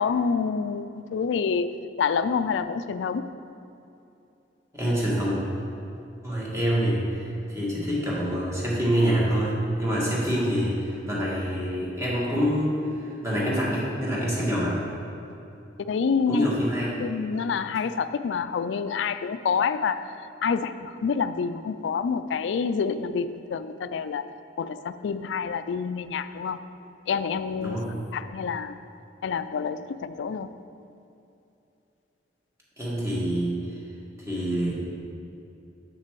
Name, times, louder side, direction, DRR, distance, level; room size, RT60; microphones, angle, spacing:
voice 1, 0.0-1.7 2.0-3.3 15.8-16.5 17.0-24.2 24.6-26.6 27.1-27.8 28.1-28.7 29.2-30.5, left 6 dB, 80° left, 12 dB, 0.3 m, -27 dB
voice 2, 4.7-5.4 6.2-12.7 13.0-14.8 16.3-17.0 27.6-28.0 32.8-33.8 34.3-34.7, equal, 15° right, -6 dB, 1.8 m, -26 dB
7.8 x 5.8 x 4.5 m, 2.7 s
head